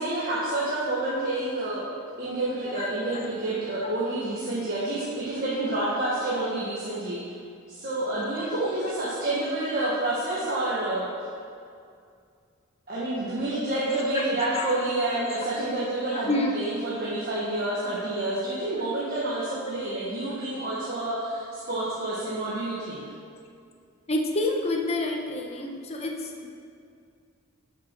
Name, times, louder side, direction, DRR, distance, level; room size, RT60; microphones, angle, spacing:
voice 1, 0.0-7.2 7.7-11.1 12.9-23.0, right 2 dB, 45° right, -8 dB, 1.5 m, -29 dB
voice 2, 2.7-3.3 5.8-5.9 8.4-9.3 13.9-14.9 16.3-16.6 23.2-23.3 24.1-26.5, left 2 dB, 30° left, 1 dB, 1.0 m, -30 dB
12.0 x 6.1 x 4.6 m, 2.3 s
head